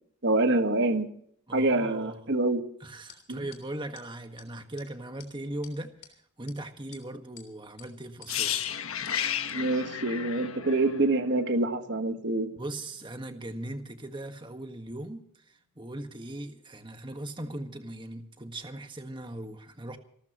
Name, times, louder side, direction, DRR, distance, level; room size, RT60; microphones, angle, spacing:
voice 1, 0.2-1.1 1.5-2.6 3.3-3.4 9.5-12.5, right 2 dB, 55° right, 8 dB, 1.6 m, -26 dB
voice 2, 1.5-2.3 2.8-5.9 6.4-8.6 12.6-20.0, right 1 dB, 20° right, 6 dB, 1.6 m, -39 dB
sound 1, 3.1-3.2 3.5-3.6 3.9-4.0 4.4-4.5 4.8-4.9 5.2-5.3 5.6-6.1 6.5-6.6 6.9-7.5 7.8-7.9 8.2-8.3 8.6-8.7 9.0-9.2 9.5-9.6, left 10 dB, 50° left, 3.3 m, -50 dB
sound 2, 8.3-12.1 12.4-12.6, left 9 dB, 75° left, 1.4 m, -33 dB
28.5 x 13.0 x 3.1 m, 0.64 s
head